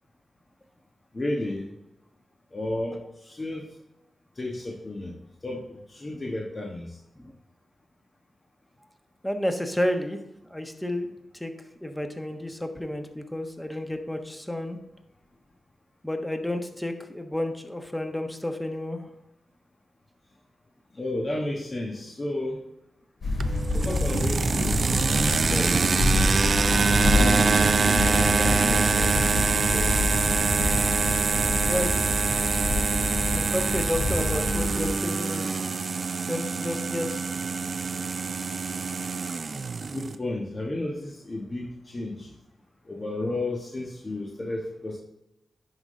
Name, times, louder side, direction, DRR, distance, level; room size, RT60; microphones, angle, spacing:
voice 1, 1.1-1.8 2.5-3.7 4.3-5.1 5.4-7.0 20.9-22.6 23.7-24.9 25.5-25.8 27.1-29.9 39.9-42.3 42.9-45.0, left 1 dB, 40° left, -1 dB, 1.3 m, -32 dB
voice 2, 9.2-10.2 10.5-11.1 11.3-11.5 11.8-14.8 16.0-19.0 31.7-32.1 33.3-35.5 36.3-37.3, left 1 dB, 10° left, 5 dB, 1.2 m, -31 dB
sound 1, 23.2-34.9, left 2 dB, 65° left, 2.6 m, -27 dB
sound 2, 23.4-40.2, right 4 dB, 60° right, 0.4 m, -25 dB
10.5 x 3.9 x 3.7 m, 0.88 s
supercardioid pair, 40°, 0 cm